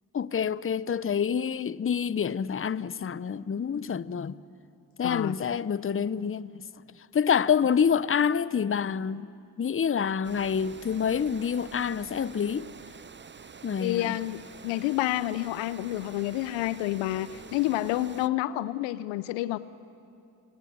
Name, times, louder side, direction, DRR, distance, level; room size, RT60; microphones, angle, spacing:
voice 1, 0.1-4.4 5.0-6.6 7.0-9.3 9.6-12.7 13.6-14.2, left 7 dB, 30° left, 0.8 m, -27 dB
voice 2, 5.0-5.4 13.8-19.6, left 15 dB, 80° left, 0.8 m, -29 dB
Water, 10.2-18.3, right 5 dB, 25° right, 0.8 m, -47 dB
28.5 x 18.5 x 10.0 m
hypercardioid pair, 40°, 45 cm